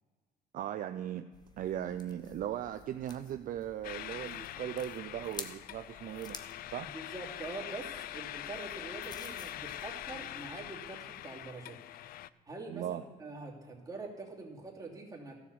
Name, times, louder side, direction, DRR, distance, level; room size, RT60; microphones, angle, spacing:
voice 1, 0.5-1.3 1.6-6.4 6.7-6.9 12.7-13.0, right 11 dB, 55° right, 9 dB, 0.5 m, -38 dB
sound 1, 1.3-10.6, left 4 dB, 25° left, 1.0 m, -52 dB
sound 2, 3.8-12.3, left 13 dB, 60° left, 0.4 m, -43 dB
voice 2, 6.9-11.8 12.5-15.4, right 3 dB, 20° right, -3 dB, 2.9 m, -44 dB
13.5 x 7.3 x 6.9 m, 1.4 s
cardioid pair, 110°, 17 cm